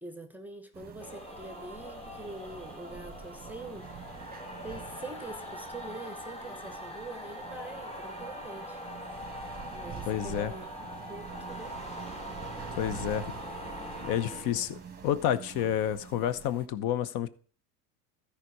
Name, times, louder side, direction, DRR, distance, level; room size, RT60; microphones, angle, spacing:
voice 1, 0.0-3.9 4.6-8.8 9.7-10.7 11.1-11.7, right 2 dB, 5° right, 1.0 m, -44 dB
sound 1, 0.7-16.7, right 8 dB, 20° right, 1.2 m, -47 dB
sound 2, 1.0-15.2, left 1 dB, 15° left, 1.6 m, -42 dB
voice 2, 10.1-10.5 12.8-13.3 14.0-17.3, left 10 dB, 60° left, 1.0 m, -30 dB
13.5 x 5.2 x 4.8 m
supercardioid pair, 95°, 42 cm